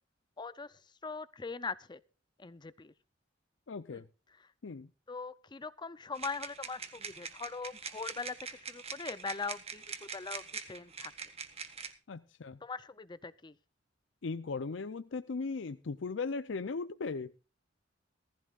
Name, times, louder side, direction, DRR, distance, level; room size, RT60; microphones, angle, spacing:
voice 1, 0.4-2.0 2.4-2.9 3.9-4.0 4.4-4.5 5.1-9.8 10.1-11.1 12.6-13.5, left 4 dB, 25° left, 16 dB, 0.5 m, -41 dB
voice 2, 3.7-4.0 4.6-4.9 12.1-12.6 14.2-17.3, left 4 dB, 75° left, 13 dB, 0.6 m, -37 dB
sound 1, 6.1-11.9, right 5 dB, 35° right, 1.5 m, -44 dB
18.5 x 15.0 x 2.4 m, 0.35 s
head